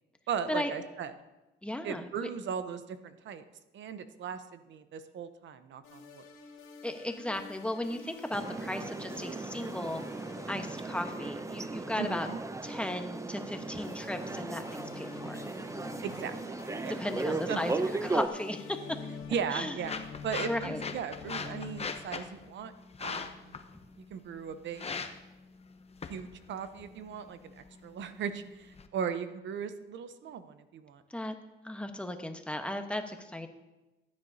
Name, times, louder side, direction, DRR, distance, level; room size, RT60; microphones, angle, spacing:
voice 1, 0.3-1.1 1.8-3.4 3.7-6.2 12.0-12.4 16.0-16.9 17.5-17.7 19.3-22.7 23.0-23.5 24.1-24.9 26.1-31.0, right 7 dB, 70° right, 11 dB, 0.8 m, -38 dB
voice 2, 1.6-2.3 6.8-10.0 10.5-12.3 12.6-15.4 16.9-18.8 19.5-19.8 20.4-20.8 31.1-31.3 31.6-33.5, left 1 dB, 5° left, 5 dB, 1.1 m, -36 dB
sound 1, 5.8-21.8, left 5 dB, 85° left, 2.0 m, -47 dB
sound 2, 8.3-18.3, right 3 dB, 15° right, 0.5 m, -37 dB
sound 3, 18.9-28.9, left 5 dB, 30° left, 0.8 m, -42 dB
15.0 x 9.7 x 2.7 m, 1.1 s
cardioid pair, 90°, 20 cm